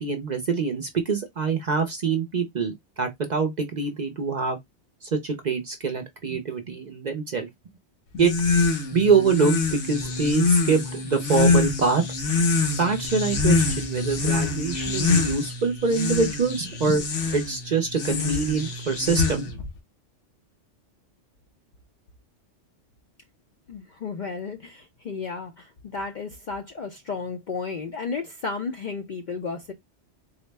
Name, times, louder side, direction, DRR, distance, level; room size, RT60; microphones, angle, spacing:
voice 1, 0.0-4.6 5.0-7.5 8.2-8.3 8.9-12.0 12.8-17.0 17.3-19.5, right 4 dB, 50° right, 0.6 m, -24 dB
sound 1, 8.1-19.7, left 4 dB, 85° left, 1.3 m, -25 dB
voice 2, 23.7-29.7, left 4 dB, 60° left, 0.5 m, -33 dB
4.0 x 2.1 x 3.2 m
omnidirectional pair, 1.2 m